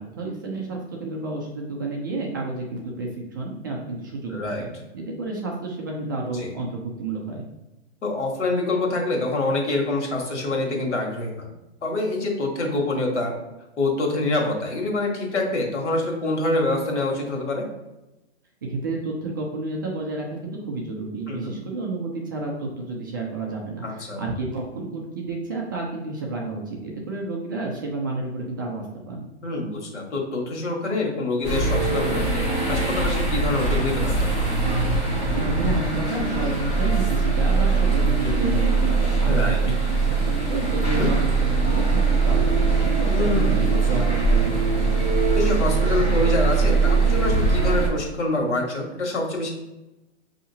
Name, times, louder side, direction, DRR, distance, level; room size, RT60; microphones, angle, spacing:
voice 1, 0.0-4.7 4.9-7.5 18.6-29.3 35.3-45.2, right 3 dB, 20° right, -1 dB, 0.3 m, -31 dB
voice 2, 4.3-4.7 6.3-6.5 8.0-11.5 11.8-13.3 13.8-17.7 21.3-21.5 23.8-24.2 29.4-34.5 39.3-39.6 40.9-41.1 43.1-44.1 45.3-49.5, left 2 dB, 90° left, 1 dB, 1.5 m, -26 dB
sound 1, 31.4-47.9, right 4 dB, 20° left, 1.4 m, -21 dB
6.8 x 2.8 x 2.7 m, 0.98 s
hypercardioid pair, 150°, 34 cm